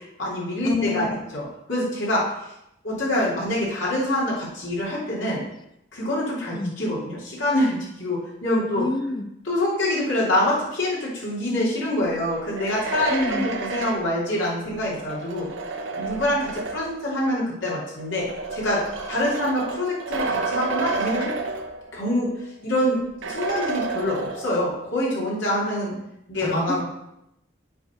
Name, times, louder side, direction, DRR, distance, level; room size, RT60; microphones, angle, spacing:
voice 1, 0.0-2.3 2.8-5.4 5.9-8.8 9.4-15.5 15.9-18.3 18.5-18.8 19.1-21.3 21.9-22.3 22.6-25.9 26.3-26.8, left 1 dB, 85° left, -6 dB, 3.0 m, -25 dB
voice 2, 0.6-1.2 6.5-6.7 8.8-9.3 13.1-13.5 26.4-26.8, left 2 dB, 25° left, 7 dB, 0.5 m, -28 dB
sound 1, 12.4-17.1 18.0-22.2 22.5-22.6 23.2-24.8, right 3 dB, 90° right, 0.8 m, -30 dB
7.5 x 3.9 x 6.1 m, 0.84 s
head